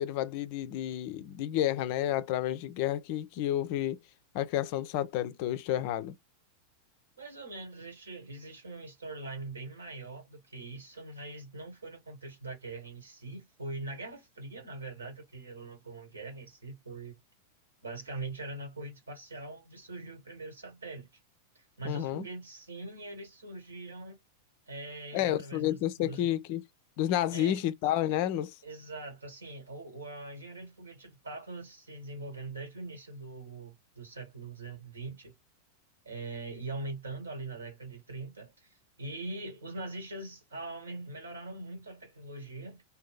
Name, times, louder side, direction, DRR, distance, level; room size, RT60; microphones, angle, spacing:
voice 1, 0.0-4.0 4.3-6.1 21.8-22.3 25.1-26.6 27.0-28.5, left 12 dB, 45° left, 0.3 m, -30 dB
voice 2, 7.2-17.2 17.8-21.1 21.5-24.2 24.7-26.3 27.3-27.6 28.6-35.3 36.0-42.8, right 2 dB, 75° right, 1.3 m, -42 dB
2.6 x 2.2 x 3.4 m
figure-of-eight pair, 90°, 0 cm